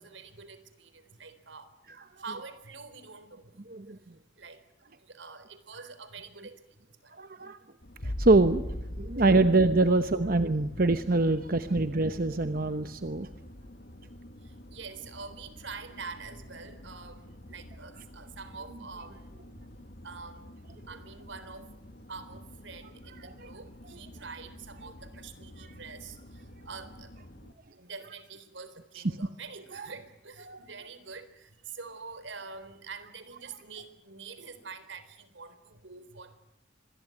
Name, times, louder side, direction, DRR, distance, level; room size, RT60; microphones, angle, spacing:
voice 1, 0.0-1.7 2.2-3.6 4.4-4.6 5.0-6.6 7.0-7.1 10.7-10.8 14.7-19.3 20.0-20.5 20.9-21.7 22.1-26.2 26.7-27.1 27.8-36.4, right 4 dB, 80° right, 12 dB, 3.9 m, -45 dB
voice 2, 3.7-4.0 7.2-7.6 8.0-8.6 9.0-13.3 23.2-23.5 29.7-29.9 30.5-30.6, right 2 dB, 50° right, 10 dB, 1.0 m, -25 dB
sound 1, 7.8-27.5, left 1 dB, 55° left, 1.9 m, -50 dB
sound 2, 8.0-13.5 13.9-14.5, left 1 dB, 80° left, 2.0 m, -40 dB
26.0 x 22.0 x 9.6 m, 0.85 s
head